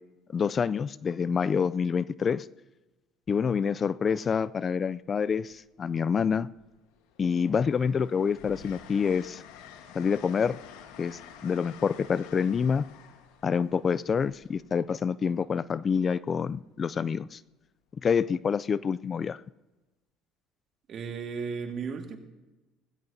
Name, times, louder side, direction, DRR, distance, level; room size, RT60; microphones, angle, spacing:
voice 1, 0.3-2.4 3.3-6.5 7.2-9.4 9.9-10.6 11.0-12.8 13.4-17.4 18.0-19.4, left 6 dB, 40° left, 18 dB, 0.4 m, -27 dB
Train, 5.5-6.2 6.6-15.3 16.9-17.2, left 8 dB, 80° left, 1.3 m, -50 dB
voice 2, 20.9-22.2, right 5 dB, 50° right, 5 dB, 1.9 m, -35 dB
19.5 x 16.0 x 2.7 m, 1.1 s
supercardioid pair, 75°, 0 cm